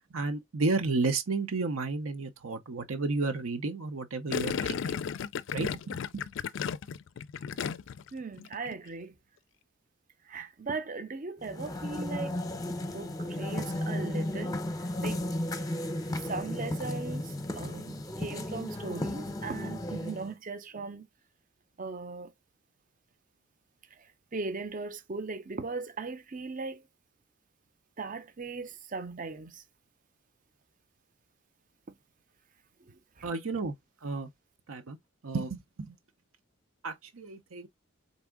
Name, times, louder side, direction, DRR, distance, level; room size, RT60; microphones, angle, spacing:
voice 1, 0.1-4.8 5.5-5.8 6.1-6.2 33.2-33.7 34.0-34.3 34.7-35.0 35.2-35.6 35.9-36.0 36.8-37.7, right 3 dB, 80° right, 0.7 m, -32 dB
Gurgling, 4.3-8.1 8.4-8.8, left 7 dB, 60° left, 0.3 m, -34 dB
voice 2, 8.1-9.1 10.3-12.4 12.7-14.6 15.0-15.2 16.1-21.0 21.8-22.3 24.3-26.8 28.0-29.6, right 4 dB, 40° right, 0.7 m, -38 dB
sound 1, 11.4-20.3, left 1 dB, 15° left, 0.7 m, -34 dB
4.1 x 3.5 x 3.6 m
head